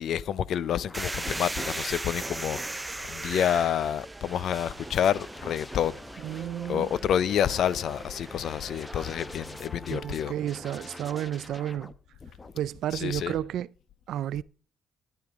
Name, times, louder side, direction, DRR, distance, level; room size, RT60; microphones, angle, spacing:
voice 1, 0.0-6.0 6.7-10.3 12.9-13.3, left 9 dB, 70° left, 0.6 m, -28 dB
sound 1, 0.7-3.5 4.7-7.0 8.5-11.9 12.2-12.8, left 3 dB, 25° left, 1.1 m, -49 dB
sound 2, 0.9-9.6, right 2 dB, 15° right, 0.5 m, -38 dB
sound 3, 6.0-11.3, equal, ahead, 1.1 m, -46 dB
voice 2, 6.2-6.9 9.9-11.9 12.5-13.7 14.1-14.4, right 11 dB, 80° right, 0.4 m, -32 dB
12.0 x 11.0 x 3.6 m
cardioid pair, 90°, 0 cm